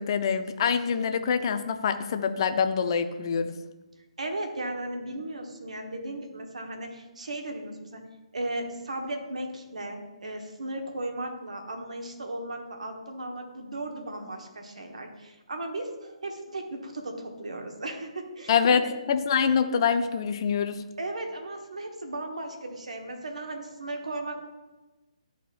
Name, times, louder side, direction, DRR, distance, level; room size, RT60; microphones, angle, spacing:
voice 1, 0.0-3.6 18.5-20.8, left 6 dB, 45° left, 9 dB, 0.5 m, -25 dB
voice 2, 4.2-8.0 8.3-18.9 21.0-24.5, right 2 dB, 75° right, 3 dB, 1.3 m, -36 dB
11.0 x 4.1 x 2.5 m, 1.1 s
figure-of-eight pair, 140°, 4 cm